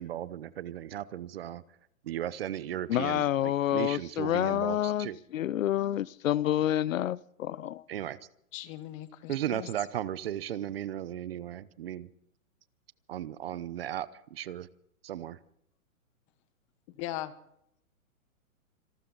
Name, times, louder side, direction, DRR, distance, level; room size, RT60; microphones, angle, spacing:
voice 1, 0.0-1.6 2.0-5.2 7.9-8.2 9.3-12.1 13.1-14.7 15.0-15.4, right 11 dB, 45° right, 0.9 m, -36 dB
voice 2, 2.9-7.8, left 12 dB, 65° left, 0.7 m, -28 dB
voice 3, 8.5-9.7 17.0-17.3, left 14 dB, 20° left, 1.0 m, -39 dB
27.0 x 13.0 x 4.0 m
hypercardioid pair, 160°, 42 cm